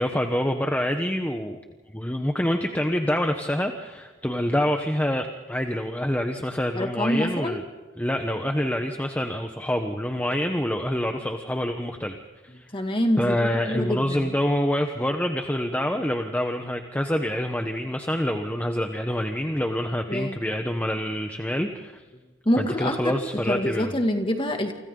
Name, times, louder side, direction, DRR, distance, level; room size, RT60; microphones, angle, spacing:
voice 1, 0.0-1.6 1.9-7.6 8.0-12.2 12.4-12.7 13.2-22.0 22.6-24.0, equal, 10° left, 5 dB, 1.0 m, -26 dB
voice 2, 6.7-7.6 12.7-13.4 13.6-14.4 20.1-20.4 22.5-23.1 23.5-24.7, equal, 25° left, 4 dB, 2.3 m, -25 dB
29.0 x 25.0 x 3.9 m, 1.3 s
head